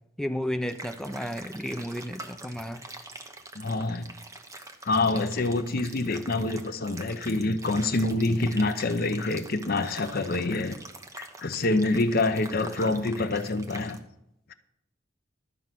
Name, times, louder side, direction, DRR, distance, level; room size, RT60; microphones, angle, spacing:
voice 1, 0.2-2.8, equal, 5° left, 7 dB, 0.6 m, -32 dB
sound 1, 0.7-14.0, right 2 dB, 15° right, 1.0 m, -45 dB
voice 2, 3.5-4.1 4.9-10.7 11.2-14.0, left 2 dB, 55° left, 10 dB, 0.7 m, -26 dB
12.5 x 5.4 x 7.6 m, 0.81 s
head